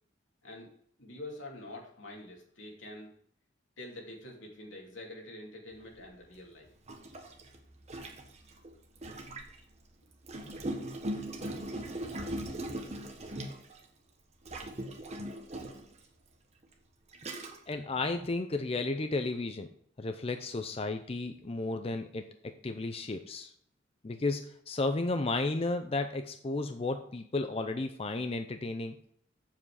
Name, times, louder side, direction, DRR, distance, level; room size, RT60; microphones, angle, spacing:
voice 1, 1.0-3.1 3.8-6.7, left 1 dB, 85° left, -1 dB, 2.7 m, -46 dB
Gurgling, 6.0-6.1 6.9-9.6 10.2-13.8 14.5-15.9 16.6-16.7 17.1-17.7, right 1 dB, 35° right, 1.3 m, -39 dB
voice 2, 17.7-19.7 20.0-23.5 24.0-29.0, left 2 dB, 30° left, 8 dB, 0.5 m, -33 dB
7.8 x 7.3 x 4.8 m, 0.63 s
head